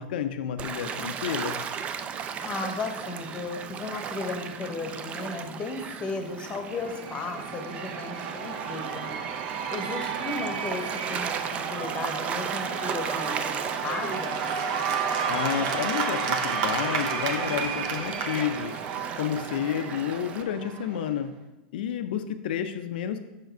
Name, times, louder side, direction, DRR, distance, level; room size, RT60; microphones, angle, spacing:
voice 1, 0.0-1.6 15.3-18.9 19.1-21.3 21.7-23.2, left 9 dB, 75° left, 8 dB, 0.5 m, -30 dB
Gull seagull / Waves surf, 0.6-20.4, right 7 dB, 25° right, 0.3 m, -37 dB
voice 2, 2.4-9.1 9.7-14.4, left 3 dB, 20° left, 5 dB, 0.9 m, -35 dB
Cheering / Applause / Crowd, 6.4-21.1, right 6 dB, 55° right, 0.7 m, -31 dB
5.8 x 4.8 x 4.5 m, 1.0 s
supercardioid pair, 145°, 5 cm